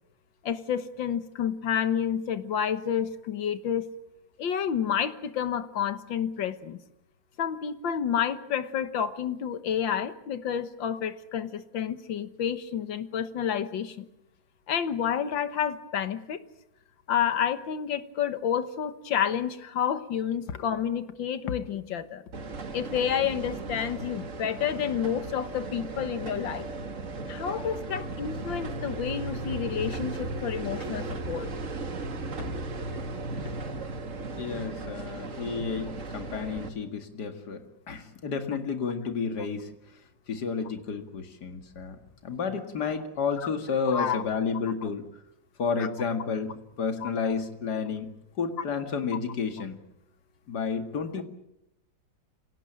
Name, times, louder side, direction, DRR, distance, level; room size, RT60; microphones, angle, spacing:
voice 1, 0.4-3.9 4.4-6.8 7.4-14.1 14.7-16.4 17.1-22.2 22.7-26.7 27.3-31.5 43.9-44.2 45.8-45.9 47.0-47.1, left 8 dB, 90° left, 12 dB, 2.0 m, -29 dB
sound 1, 22.3-36.7, right 3 dB, 45° right, 2.1 m, -36 dB
voice 2, 34.4-39.7 40.3-45.0 45.6-46.5 46.8-48.1 48.4-49.8 50.5-51.2, left 5 dB, 60° left, 7 dB, 2.6 m, -31 dB
26.0 x 17.5 x 8.9 m, 0.86 s
omnidirectional pair, 2.0 m